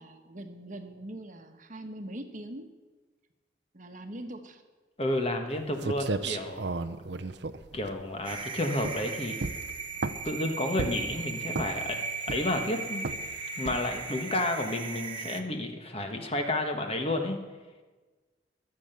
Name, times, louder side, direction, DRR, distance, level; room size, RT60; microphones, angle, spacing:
voice 1, 0.0-2.7 3.7-4.6, right 1 dB, 45° right, 6 dB, 1.2 m, -42 dB
voice 2, 5.0-6.7 7.7-9.4 10.2-13.1 13.6-17.4, left 1 dB, 30° left, 5 dB, 1.5 m, -31 dB
sound 1, 5.5-5.6 5.8-8.4 8.8-9.1 9.4-10.4 10.8-11.1 11.5-11.9 12.3-12.7 13.0-13.3 13.7-14.0, right 3 dB, 65° right, 0.7 m, -33 dB
sound 2, 8.2-15.4, right 4 dB, 25° right, 1.0 m, -37 dB
22.5 x 7.9 x 6.9 m, 1.3 s
head